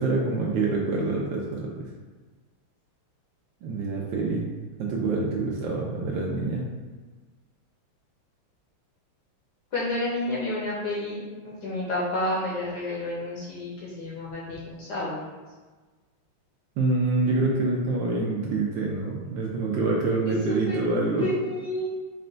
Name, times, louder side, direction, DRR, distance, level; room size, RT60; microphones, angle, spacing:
voice 1, 0.0-1.9 3.6-4.5 4.8-6.6 16.8-21.3, right 3 dB, 75° right, -2 dB, 1.1 m, -26 dB
voice 2, 9.7-15.2 20.3-20.4 20.7-20.8 21.2-21.9, left 1 dB, 65° left, -6 dB, 1.1 m, -30 dB
4.2 x 2.2 x 3.8 m, 1.3 s
omnidirectional pair, 2.4 m